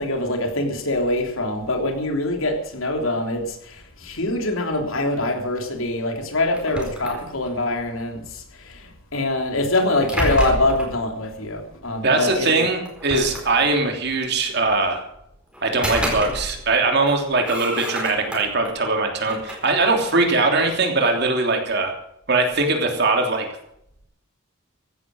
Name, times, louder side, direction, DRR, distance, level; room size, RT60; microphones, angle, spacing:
voice 1, 0.0-12.6, left 2 dB, 75° left, 4 dB, 3.2 m, -24 dB
sound 1, 6.5-7.7 9.6-11.0 12.2-12.3 12.9-13.9 15.5-16.8 17.0-18.7 19.2-20.8, right 1 dB, 5° right, 4.4 m, -30 dB
voice 2, 12.0-15.0 15.6-21.9 22.3-23.5, right 3 dB, 55° right, 3 dB, 3.1 m, -21 dB
15.5 x 12.5 x 6.3 m, 0.75 s
head